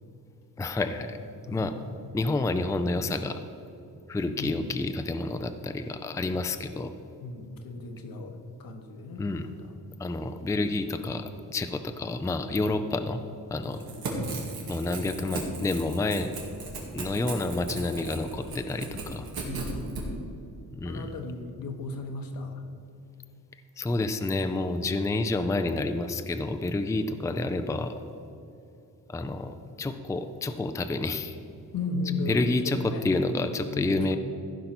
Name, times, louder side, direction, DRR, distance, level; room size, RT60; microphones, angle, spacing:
voice 1, 0.6-1.2 1.5-1.7 2.1-3.4 4.1-6.9 9.2-9.5 10.0-13.2 13.5-13.8 14.7-16.4 16.9-19.3 20.7-21.1 23.8-28.0 29.1-31.4 32.3-34.2, left 2 dB, 10° left, 8 dB, 0.4 m, -29 dB
voice 2, 1.5-1.9 4.2-4.6 7.2-9.7 13.8-14.2 19.4-20.0 20.8-22.6 31.7-33.1 33.5-34.2, left 3 dB, 75° left, 5 dB, 1.3 m, -36 dB
Crackle / Tearing, 13.7-20.0, right 3 dB, 90° right, 2.4 m, -37 dB
14.5 x 5.4 x 6.0 m, 2.7 s
wide cardioid pair, 125°, 35 cm